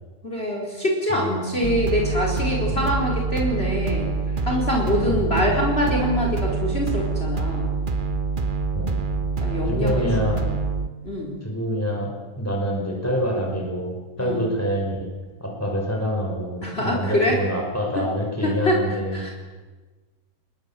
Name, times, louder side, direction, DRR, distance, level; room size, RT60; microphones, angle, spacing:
voice 1, 0.2-4.1 4.4-7.7 9.4-10.4 11.0-11.4 14.2-14.4 16.6-17.4 18.0-18.1 18.4-18.8 19.1-19.3, left 1 dB, 40° left, -1 dB, 4.5 m, -24 dB
voice 2, 1.1-1.8 2.7-2.9 5.1-5.6 8.7-9.3 9.7-10.4 11.4-12.1 12.4-15.1 15.4-19.3, equal, 10° left, 0 dB, 5.7 m, -27 dB
sound 1, 1.6-10.9, right 4 dB, 35° right, 1.4 m, -26 dB
28.5 x 21.0 x 7.6 m, 1.3 s
omnidirectional pair, 1.6 m